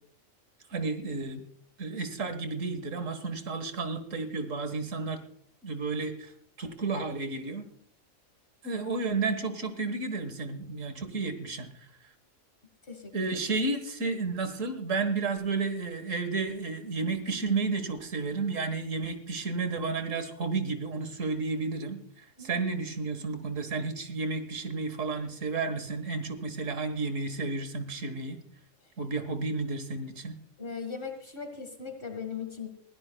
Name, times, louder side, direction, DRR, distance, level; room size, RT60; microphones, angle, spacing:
voice 1, 0.7-1.4 1.8-5.2 5.6-6.3 6.6-7.7 8.6-11.7 13.1-22.0 22.4-28.4 29.0-30.4, right 3 dB, 70° right, 9 dB, 1.9 m, -32 dB
voice 2, 30.6-32.7, left 5 dB, 45° left, 5 dB, 1.9 m, -38 dB
21.5 x 16.0 x 2.3 m, 0.63 s
omnidirectional pair, 1.4 m